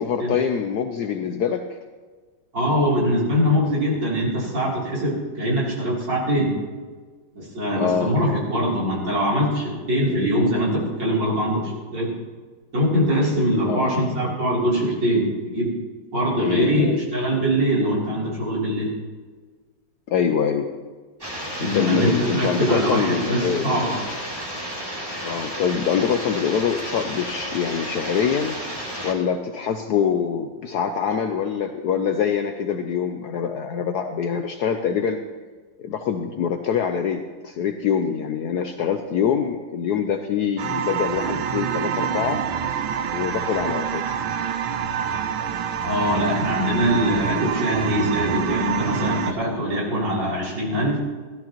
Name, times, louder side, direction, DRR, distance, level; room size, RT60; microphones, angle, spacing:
voice 1, 0.0-1.8 7.8-8.1 10.0-10.3 13.7-14.0 16.4-17.0 20.1-20.7 21.6-24.0 25.2-28.6 29.0-35.2 35.8-42.4 43.1-44.1, left 7 dB, 70° left, 6 dB, 1.0 m, -24 dB
voice 2, 2.5-6.5 7.3-12.1 12.7-15.7 16.1-16.9 17.1-18.9 21.6-24.0 45.8-51.0, equal, 60° right, -5 dB, 3.9 m, -22 dB
sound 1, 21.2-29.1, equal, 10° right, 2.0 m, -32 dB
sound 2, 40.6-49.3, right 8 dB, 85° right, 1.5 m, -26 dB
16.0 x 13.0 x 3.0 m, 1.4 s
omnidirectional pair, 2.2 m